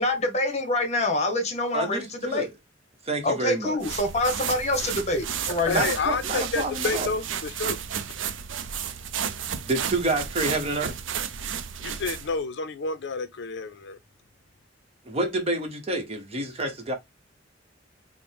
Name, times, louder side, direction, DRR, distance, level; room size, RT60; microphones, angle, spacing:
voice 1, 0.0-2.5 3.2-5.9, left 2 dB, 35° left, 1.0 m, -26 dB
voice 2, 1.7-2.5 3.1-3.8 5.7-7.1 9.7-10.9 15.1-16.9, right 2 dB, 30° right, 0.9 m, -28 dB
sound 1, 3.8-12.4, right 8 dB, 75° right, 0.5 m, -32 dB
voice 3, 5.5-7.8 11.8-14.0, left 4 dB, 65° left, 0.5 m, -30 dB
5.0 x 2.1 x 3.2 m
head